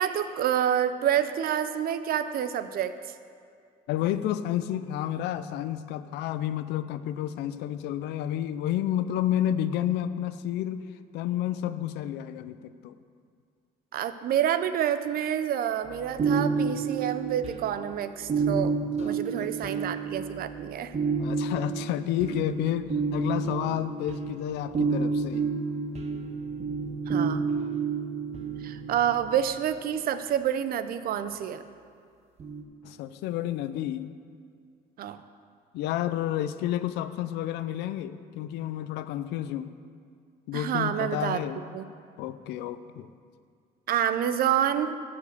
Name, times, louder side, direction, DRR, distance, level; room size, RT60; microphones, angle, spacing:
voice 1, 0.0-2.9 13.9-18.7 19.0-20.9 27.1-27.5 28.6-31.6 35.0-35.2 40.5-41.4 41.7-41.9 43.9-44.9, right 10 dB, 60° right, 11 dB, 0.6 m, -28 dB
voice 2, 3.9-10.8 11.1-12.9 19.0-19.7 21.2-25.5 32.8-34.1 35.7-39.7 40.5-41.6 42.2-43.1, left 11 dB, 85° left, 12 dB, 0.5 m, -30 dB
sound 1, 15.9-29.6 32.4-32.6, right 5 dB, 40° right, 1.1 m, -30 dB
14.0 x 5.2 x 6.7 m, 2.3 s
cardioid pair, 110°, 17 cm